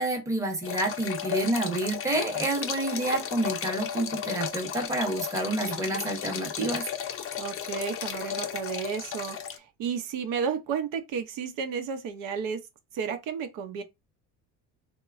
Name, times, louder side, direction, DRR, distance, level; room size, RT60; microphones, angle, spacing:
voice 1, 0.0-6.8, right 2 dB, 10° right, 0.7 m, -29 dB
sound 1, 0.6-9.6, left 9 dB, 40° left, 0.5 m, -34 dB
voice 2, 7.4-12.6 12.9-13.8, right 6 dB, 75° right, 0.7 m, -32 dB
3.0 x 2.1 x 2.4 m
cardioid pair, 115°, 33 cm